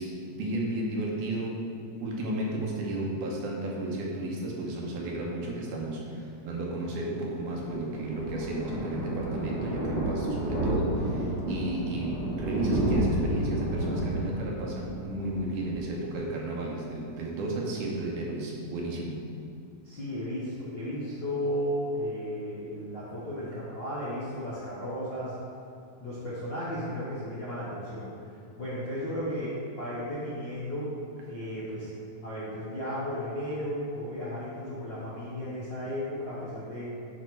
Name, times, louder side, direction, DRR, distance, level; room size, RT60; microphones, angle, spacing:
voice 1, 0.0-1.6 2.0-19.2, right 1 dB, 75° right, -2 dB, 2.5 m, -33 dB
Thunder, 7.2-16.6 16.9-17.1 17.4-17.5 17.7-17.8, right 1 dB, 35° right, 0.6 m, -31 dB
voice 2, 19.8-25.4 26.0-30.9 31.3-31.9 32.2-36.9, equal, 60° left, -9 dB, 1.2 m, -34 dB
10.5 x 3.6 x 4.6 m, 2.7 s
omnidirectional pair, 3.7 m